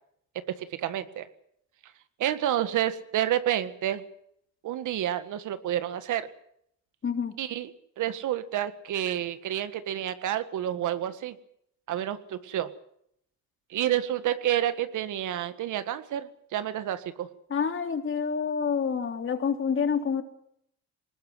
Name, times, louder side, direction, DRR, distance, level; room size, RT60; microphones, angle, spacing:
voice 1, 0.6-1.3 2.2-4.0 4.6-6.3 7.4-7.7 8.0-11.4 11.9-12.7 13.7-17.3, right 11 dB, 80° right, 12 dB, 1.8 m, -29 dB
voice 2, 7.0-7.4 17.5-20.2, left 6 dB, 40° left, 6 dB, 3.3 m, -28 dB
20.0 x 20.0 x 7.9 m, 0.72 s
cardioid pair, 90°, 30 cm